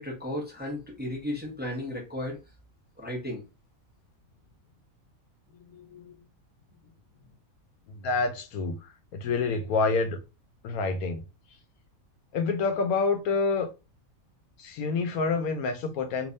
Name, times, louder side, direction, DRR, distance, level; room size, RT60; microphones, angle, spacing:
voice 1, 0.0-2.4 3.0-3.4, left 1 dB, 10° right, 0.9 m, -34 dB
voice 2, 5.7-6.2 7.9-10.2 10.6-11.2 12.3-13.7 14.6-16.3, left 4 dB, 90° left, 1.2 m, -28 dB
3.3 x 3.1 x 2.6 m
omnidirectional pair, 1.5 m